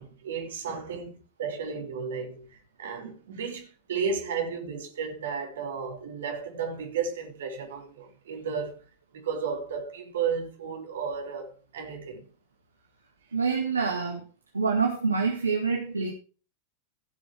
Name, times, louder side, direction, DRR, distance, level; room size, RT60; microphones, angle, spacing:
voice 1, 0.0-8.8 9.1-12.2, right 6 dB, 60° right, 3.1 m, -33 dB
voice 2, 13.3-14.2 14.5-16.1, right 5 dB, 80° right, 1.7 m, -26 dB
16.5 x 6.2 x 4.4 m
figure-of-eight pair, 90°, 0 cm